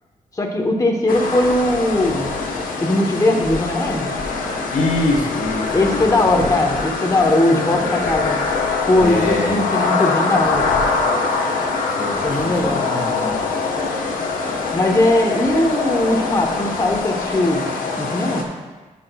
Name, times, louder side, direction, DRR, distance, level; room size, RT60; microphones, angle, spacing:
voice 1, 0.3-2.3 2.8-4.1 5.7-8.4 8.9-10.9 12.2-12.8 14.7-17.7 18.0-18.5, left 2 dB, 25° left, 1 dB, 1.0 m, -19 dB
sound 1, 1.1-18.4, left 4 dB, 85° left, 1.0 m, -23 dB
voice 2, 4.7-6.5 9.0-9.6 11.9-13.4, left 2 dB, 65° left, 1 dB, 1.2 m, -24 dB
11.5 x 5.9 x 2.3 m, 1.3 s
cardioid pair, 65°, 14 cm